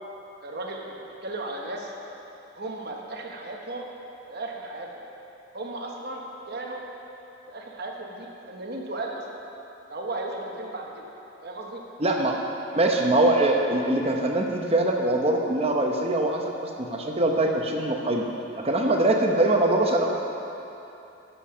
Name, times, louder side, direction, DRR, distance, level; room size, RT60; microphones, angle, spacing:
voice 1, 0.4-0.9 1.2-1.9 2.5-3.9 4.3-5.0 5.5-6.2 6.5-6.8 7.5-9.2 9.9-11.1 11.4-11.8, right 2 dB, 50° right, 0 dB, 1.1 m, -35 dB
voice 2, 12.0-12.4 12.7-18.2 18.5-20.1, right 1 dB, 30° right, 1 dB, 0.9 m, -23 dB
11.5 x 6.9 x 5.7 m, 2.9 s
head